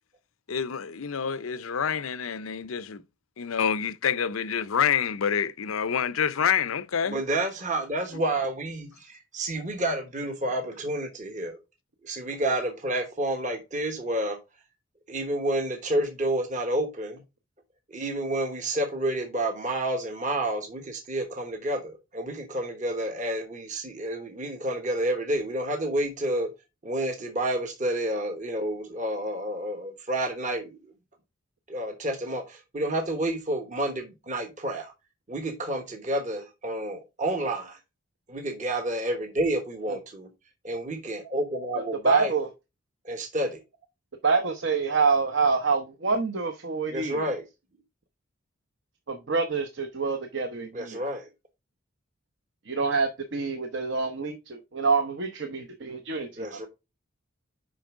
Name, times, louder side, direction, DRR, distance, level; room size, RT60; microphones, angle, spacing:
voice 1, 0.5-3.0 3.4-7.2, left 7 dB, 85° left, 0.6 m, -27 dB
voice 2, 7.1-11.6 12.0-14.4 15.1-17.2 17.9-26.5 26.8-30.9 31.7-34.9 35.3-37.8 38.3-40.3 40.6-42.3 43.0-43.6 46.9-47.4 50.7-51.3 56.4-56.7, right 1 dB, 35° right, 1.1 m, -29 dB
voice 3, 42.0-42.5 44.2-47.3 49.1-51.0 52.7-56.5, right 4 dB, 60° right, 0.9 m, -26 dB
6.4 x 5.2 x 3.6 m
head